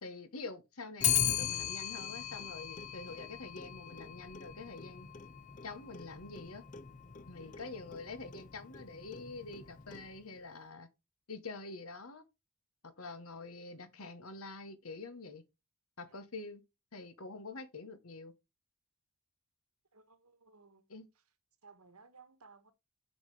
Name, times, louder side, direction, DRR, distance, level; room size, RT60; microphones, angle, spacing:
voice 1, 0.0-5.1 5.6-6.6 7.3-10.9 11.3-12.2 12.8-15.4 16.0-16.6 16.9-18.3 20.9-21.1, left 3 dB, 75° left, 1.4 m, -46 dB
Clock, 1.0-10.4, left 10 dB, 35° left, 0.5 m, -38 dB
voice 2, 7.4-7.8 16.1-16.2 19.9-20.8 21.1-21.2 21.6-22.7, right 4 dB, 90° right, 1.5 m, -60 dB
6.5 x 6.0 x 4.9 m
head